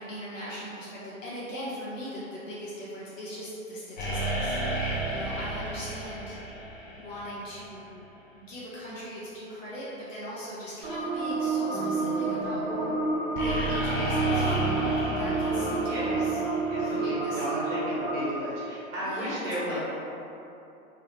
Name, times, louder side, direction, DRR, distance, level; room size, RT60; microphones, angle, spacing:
voice 1, 0.0-6.4 6.9-7.9 8.3-12.9 13.3-16.4 16.8-17.6 19.0-19.8, equal, 65° left, -8 dB, 1.0 m, -40 dB
sound 1, 4.0-7.7 13.4-17.1, right 1 dB, 35° left, 0.7 m, -32 dB
sound 2, 10.8-18.2, right 3 dB, 30° right, 0.7 m, -29 dB
sound 3, 11.7-17.4, left 1 dB, 5° left, 0.4 m, -38 dB
voice 2, 15.8-16.2 16.7-19.8, equal, 50° right, -9 dB, 1.3 m, -34 dB
3.3 x 2.8 x 2.8 m, 2.8 s
figure-of-eight pair, 105°, 43 cm